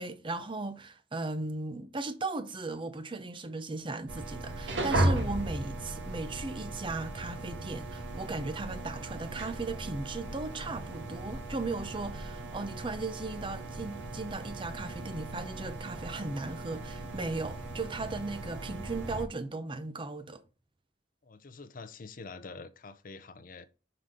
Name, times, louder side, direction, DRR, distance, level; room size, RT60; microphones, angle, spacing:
voice 1, 0.0-20.4, right 3 dB, 25° right, 0.6 m, -37 dB
sound 1, 4.1-19.2, right 1 dB, 80° right, 1.5 m, -36 dB
voice 2, 21.2-23.6, left 4 dB, 50° left, 0.6 m, -46 dB
5.8 x 3.9 x 4.9 m
head